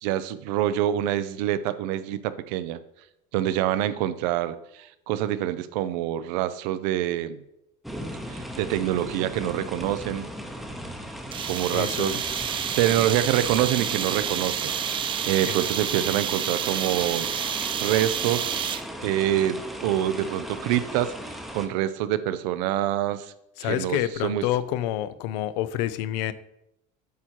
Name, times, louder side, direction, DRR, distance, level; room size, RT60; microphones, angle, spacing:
voice 1, 0.0-2.8 3.3-7.4 8.3-10.3 11.4-12.3 12.8-14.7 15.3-17.3 17.8-18.5 19.0-23.3 23.6-24.4, right 12 dB, 85° right, 14 dB, 0.6 m, -26 dB
sound 1, 7.8-21.7, equal, ahead, 0.7 m, -37 dB
sound 2, 11.3-19.0, right 9 dB, 25° right, 0.3 m, -29 dB
voice 2, 11.7-12.2 15.4-15.6 23.6-26.3, left 12 dB, 85° left, 15 dB, 0.5 m, -28 dB
8.4 x 4.5 x 4.5 m, 0.82 s
cardioid pair, 140°, 21 cm